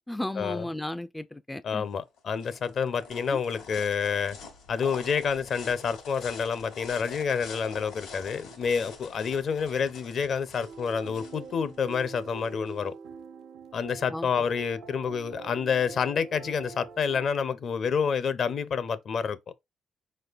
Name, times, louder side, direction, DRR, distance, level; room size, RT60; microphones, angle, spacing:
voice 1, 0.0-1.8 3.3-3.4 14.1-14.3, left 1 dB, 10° left, 0.3 m, -34 dB
voice 2, 1.6-4.4 4.7-12.9 13.7-19.4, left 6 dB, 55° left, 0.6 m, -28 dB
sound 1, 1.9-12.8, left 5 dB, 90° left, 2.1 m, -46 dB
sound 2, 10.6-17.3, right 5 dB, 80° right, 0.6 m, -44 dB
4.7 x 4.2 x 2.5 m
cardioid pair, 90°, 0 cm